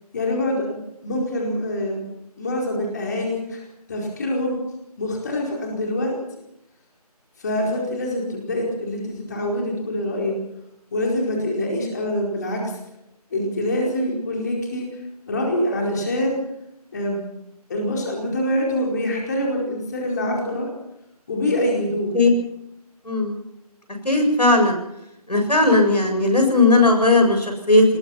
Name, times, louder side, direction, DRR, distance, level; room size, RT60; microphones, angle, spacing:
voice 1, 0.1-2.0 2.4-3.6 3.9-4.6 5.0-6.2 7.4-10.4 10.9-12.8 13.3-14.9 15.3-16.4 16.9-17.2 17.7-20.7 21.3-22.2, left 1 dB, 25° left, -1 dB, 4.6 m, -25 dB
voice 2, 23.0-23.4 24.0-24.8 25.3-27.8, left 2 dB, 90° left, 4 dB, 7.4 m, -17 dB
24.5 x 20.0 x 5.8 m, 0.84 s
figure-of-eight pair, 165°, 20 cm